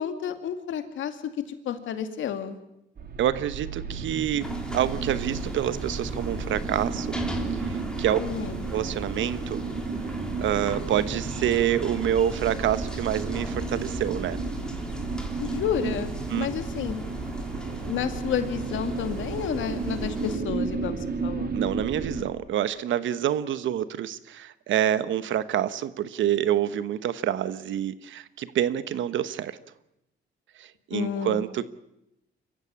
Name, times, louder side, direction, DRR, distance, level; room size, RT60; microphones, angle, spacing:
voice 1, 0.0-2.6 8.2-8.6 15.4-17.0 17.9-21.5 30.9-31.5, left 8 dB, 75° left, 8 dB, 2.3 m, -31 dB
sound 1, 3.0-22.2, right 4 dB, 50° right, 3.0 m, -33 dB
voice 2, 3.2-7.1 7.7-8.2 8.7-9.6 10.4-14.4 16.3-16.5 21.5-29.6 30.6-31.7, right 10 dB, 75° right, 14 dB, 1.1 m, -27 dB
sound 2, 4.4-20.4, left 1 dB, 5° left, 3.4 m, -39 dB
25.0 x 15.0 x 8.6 m, 0.86 s
cardioid pair, 90°, 20 cm